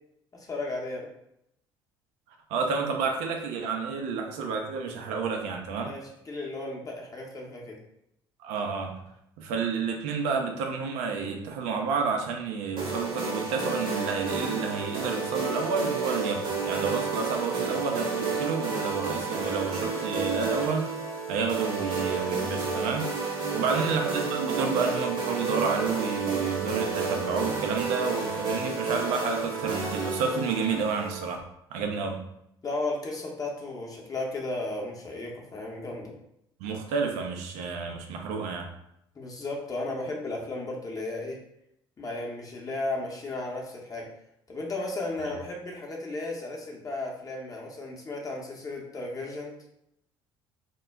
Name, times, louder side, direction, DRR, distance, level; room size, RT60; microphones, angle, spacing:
voice 1, 0.3-1.1 5.8-7.8 23.5-23.8 32.6-36.1 39.1-41.4 42.0-44.1 44.5-49.5, left 2 dB, 30° left, -2 dB, 0.7 m, -34 dB
voice 2, 2.5-5.9 8.4-9.0 9.4-20.9 21.3-23.1 23.5-31.4 31.7-32.2 36.6-38.7, right 5 dB, 65° right, 3 dB, 0.5 m, -30 dB
sound 1, 12.8-31.3, right 4 dB, 40° right, 0.9 m, -31 dB
2.2 x 2.1 x 3.4 m, 0.78 s
hypercardioid pair, 60°, 13 cm